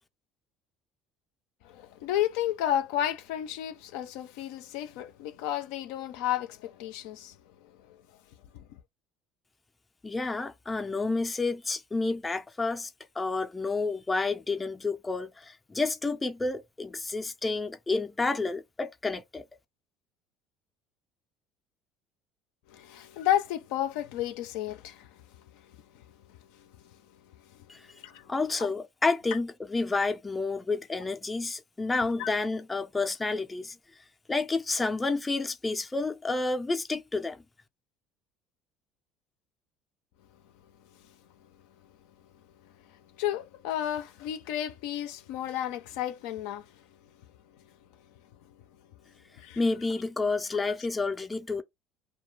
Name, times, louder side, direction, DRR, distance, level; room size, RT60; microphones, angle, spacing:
voice 1, 1.6-7.4 8.5-8.6 22.7-25.1 28.0-28.3 28.6-28.7 32.2-32.3 43.2-46.7 49.4-49.6 50.7-50.8, left 11 dB, 80° left, 0.4 m, -32 dB
voice 2, 10.0-12.9 13.2-19.4 27.7-27.8 28.3-33.8 34.3-37.4 49.6-51.6, left 3 dB, 15° left, 0.4 m, -30 dB
2.3 x 2.2 x 3.1 m
supercardioid pair, 90°, 0 cm